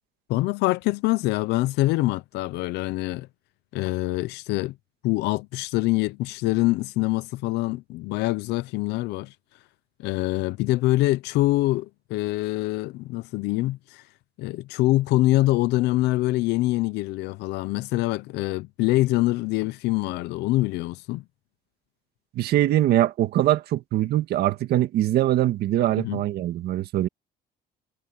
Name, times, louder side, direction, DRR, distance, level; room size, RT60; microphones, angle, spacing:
voice 1, 0.3-3.3 3.7-4.7 5.0-9.3 10.0-14.0 14.4-21.2 26.0-26.2, left 18 dB, 90° left, 0.7 m, -24 dB
voice 2, 22.4-27.1, right 13 dB, 70° right, 1.9 m, -22 dB
cardioid pair, 110°, 17 cm